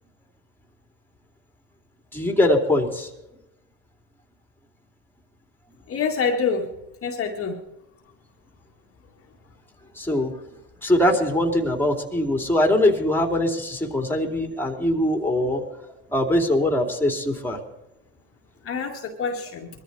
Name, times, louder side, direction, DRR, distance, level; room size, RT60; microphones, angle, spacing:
voice 1, 2.1-3.1 10.0-10.3 10.8-15.6 16.1-17.6, left 1 dB, 5° left, 5 dB, 2.9 m, -22 dB
voice 2, 5.9-6.7 7.0-7.6 18.6-19.7, left 5 dB, 35° left, 1 dB, 2.0 m, -26 dB
22.5 x 13.5 x 4.1 m, 0.91 s
supercardioid pair, 105°, 39 cm